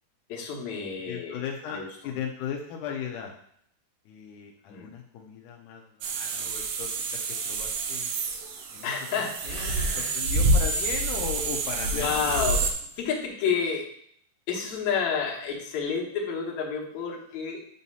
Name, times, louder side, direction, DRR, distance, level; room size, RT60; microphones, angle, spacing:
voice 1, 0.3-1.4 1.7-2.1 4.7-4.9 8.8-10.1 11.9-12.7 13.0-13.9 14.5-17.6, left 6 dB, 65° left, -1 dB, 2.0 m, -30 dB
voice 2, 1.0-3.3 4.1-8.1 8.7-9.6 10.0-12.7, left 7 dB, 90° left, 0 dB, 1.8 m, -37 dB
sound 1, 6.0-12.7, right 2 dB, 80° right, 2.0 m, -28 dB
8.1 x 2.8 x 5.4 m, 0.67 s
omnidirectional pair, 4.5 m